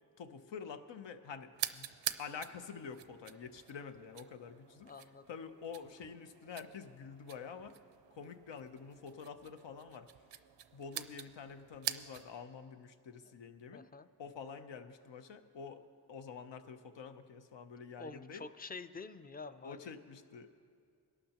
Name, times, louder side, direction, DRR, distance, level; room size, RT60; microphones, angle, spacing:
voice 1, 0.2-1.9 2.2-4.9 5.3-7.8 8.1-10.1 10.7-13.8 14.2-15.8 16.1-18.5 19.6-20.6, left 6 dB, 85° left, 9 dB, 0.8 m, -48 dB
sound 1, 1.5-12.4, right 11 dB, 85° right, 0.5 m, -46 dB
voice 2, 4.8-5.2 13.2-13.3 13.7-14.1 18.0-19.9, left 4 dB, 20° left, 12 dB, 0.5 m, -48 dB
22.0 x 12.0 x 3.0 m, 2.4 s
cardioid pair, 70°, 42 cm